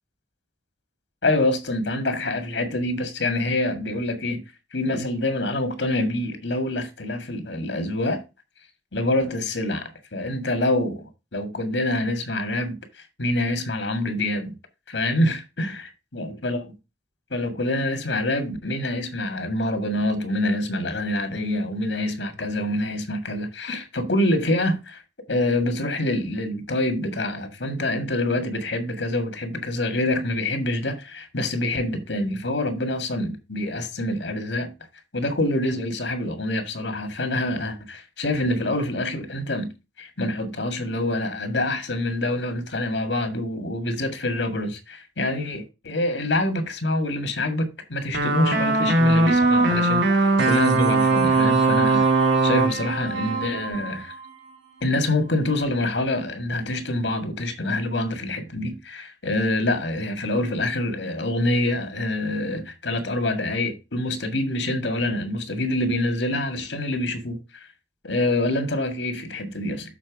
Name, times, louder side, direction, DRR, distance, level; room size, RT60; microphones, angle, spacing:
voice 1, 1.2-4.4 4.7-8.2 8.9-14.5 14.9-16.7 17.3-25.0 25.3-34.7 35.1-39.7 40.0-54.1 54.8-67.7 68.0-69.9, left 1 dB, 80° left, 1.8 m, -26 dB
sound 1, 48.1-54.3, right 3 dB, 85° right, 2.0 m, -20 dB
7.0 x 4.4 x 5.8 m
head